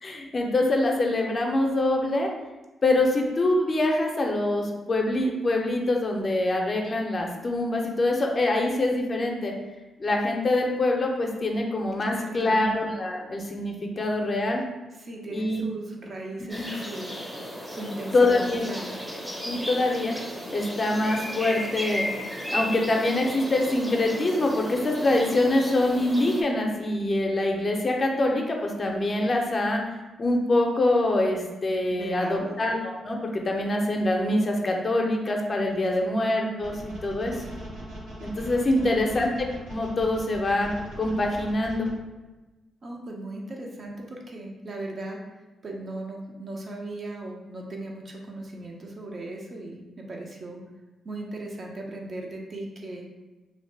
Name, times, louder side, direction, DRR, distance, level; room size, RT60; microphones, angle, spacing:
voice 1, 0.0-2.3 2.8-9.5 10.0-14.6 15.3-15.6 16.6-16.7 18.1-18.6 19.4-20.1 20.5-22.0 22.5-29.8 30.2-37.3 38.2-40.7 41.0-41.9, left 2 dB, 45° left, 1 dB, 0.5 m, -24 dB
voice 2, 12.0-12.7 14.9-19.0 31.9-32.6 38.7-39.2 42.8-45.2 45.6-50.6 51.0-53.0, right 1 dB, 50° right, 0 dB, 0.6 m, -38 dB
sound 1, 16.5-26.4, equal, 5° right, 0.6 m, -34 dB
sound 2, 36.6-41.9, right 1 dB, 75° right, 0.8 m, -40 dB
2.6 x 2.1 x 3.2 m, 1.1 s
hypercardioid pair, 45°, 0 cm